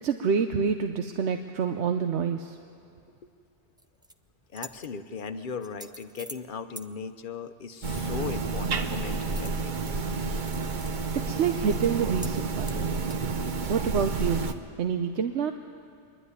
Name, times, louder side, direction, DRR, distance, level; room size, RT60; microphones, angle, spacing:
voice 1, 0.0-2.6 11.2-13.0 13.7-14.5 14.8-15.5, right 6 dB, 85° right, 6 dB, 1.1 m, -27 dB
sound 1, 3.8-4.1 4.5-4.9 5.6-6.4 6.7-6.9 9.3-9.9 10.2-10.9 11.2-11.3 11.7-11.9 12.2-12.4 12.6-13.4, right 1 dB, 5° right, 0.3 m, -44 dB
voice 2, 4.5-9.8, left 5 dB, 50° left, 9 dB, 1.0 m, -38 dB
sound 2, 7.8-14.5, right 4 dB, 50° right, 1.0 m, -30 dB
26.0 x 11.5 x 9.8 m, 2.3 s
omnidirectional pair, 1.1 m